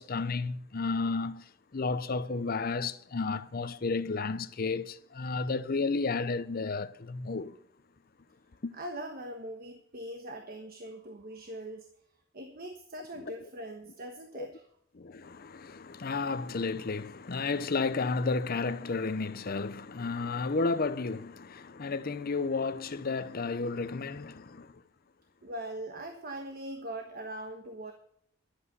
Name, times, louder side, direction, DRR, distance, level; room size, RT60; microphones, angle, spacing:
voice 1, 0.0-1.4 1.7-7.5 8.6-8.7 13.2-13.3 14.4-14.5 14.9-24.7, left 4 dB, 50° left, 0.7 m, -32 dB
voice 2, 8.7-11.9 12.3-14.7 25.4-27.9, right 1 dB, 50° right, 1.2 m, -41 dB
11.5 x 8.3 x 6.9 m
head